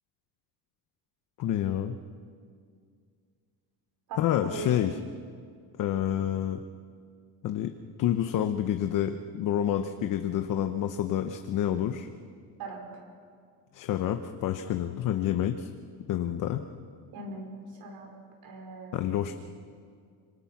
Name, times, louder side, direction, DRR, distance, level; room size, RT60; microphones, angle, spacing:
voice 1, 1.4-1.9 4.2-5.0 5.8-6.6 7.4-7.7 8.0-12.1 13.7-15.7 16.1-16.6 18.9-19.3, left 10 dB, 50° left, 7 dB, 1.0 m, -28 dB
voice 2, 4.1-4.7 12.6-12.8 17.1-18.1 18.4-19.1, right 3 dB, 60° right, 2 dB, 5.4 m, -40 dB
26.5 x 25.5 x 6.0 m, 2.1 s
cardioid pair, 180°, 40 cm